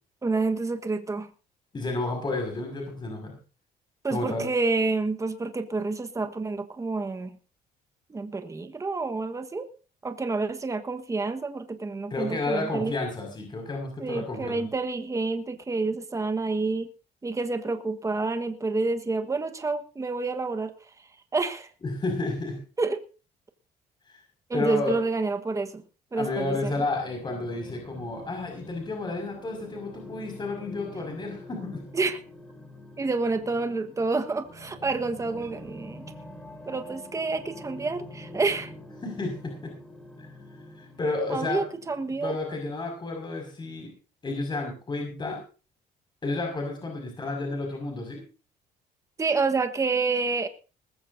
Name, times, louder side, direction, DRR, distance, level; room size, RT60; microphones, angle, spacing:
voice 1, 0.2-1.3 4.0-7.4 8.1-9.7 10.0-12.9 14.0-16.9 17.2-20.7 21.3-21.7 22.8-23.0 24.5-25.8 26.1-26.7 31.9-32.2 33.0-36.0 36.7-38.7 41.3-42.4 49.2-50.5, right 3 dB, 20° right, 8 dB, 1.3 m, -28 dB
voice 2, 1.7-3.4 4.1-4.5 12.1-14.7 21.8-22.6 24.1-24.2 24.5-25.0 26.1-31.8 39.0-39.7 40.2-40.3 40.8-41.6 42.2-43.9 44.2-45.4 46.2-48.2, left 2 dB, 25° left, 2 dB, 5.6 m, -31 dB
sound 1, 26.8-42.1, left 1 dB, 5° left, 6.9 m, -46 dB
20.0 x 15.0 x 2.7 m, 0.34 s
cardioid pair, 110°, 17 cm